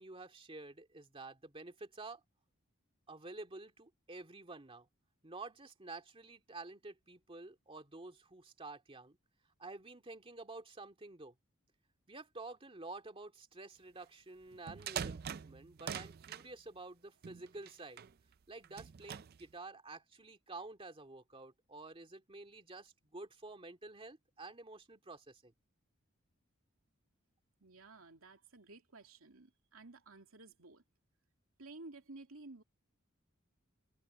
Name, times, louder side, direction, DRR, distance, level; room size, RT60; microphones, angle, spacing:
voice 1, 0.0-2.2 3.1-4.9 5.2-9.2 9.6-11.3 12.1-18.0 18.5-25.5, right 3 dB, 25° right, 2.3 m, -50 dB
sound 1, 14.5-16.5 17.2-18.1 18.6-19.4, right 8 dB, 50° right, 0.4 m, -43 dB
voice 2, 27.6-30.8 31.6-32.6, right 2 dB, 85° right, 2.8 m, -54 dB
head